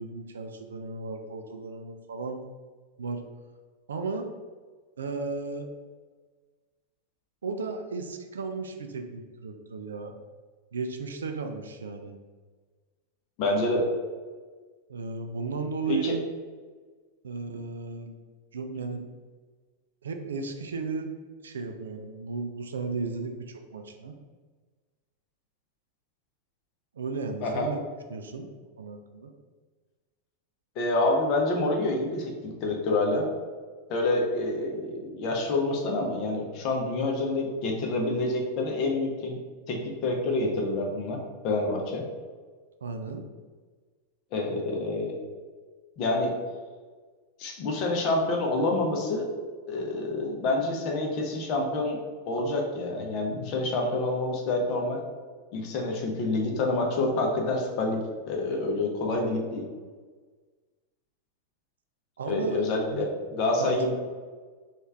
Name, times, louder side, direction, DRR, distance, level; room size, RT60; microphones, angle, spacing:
voice 1, 0.0-2.4 3.0-3.2 3.9-4.3 5.0-5.7 7.4-10.1 10.7-12.1 14.9-16.2 17.2-18.2 18.5-19.0 20.0-21.1 21.4-24.2 27.0-27.8 28.1-29.3 42.8-43.2 62.2-62.6 62.9-63.1 63.6-63.8, right 4 dB, 65° right, 5 dB, 0.3 m, -34 dB
voice 2, 13.4-13.9 15.9-16.1 27.4-27.7 30.8-33.3 33.9-39.4 39.7-41.2 41.4-42.0 44.3-45.2 46.0-46.4 47.4-49.3 49.7-52.0 52.3-55.0 55.5-59.7 62.3-63.9, left 2 dB, 40° left, 1 dB, 0.6 m, -27 dB
3.1 x 2.4 x 3.4 m, 1.4 s
figure-of-eight pair, 90°, 0 cm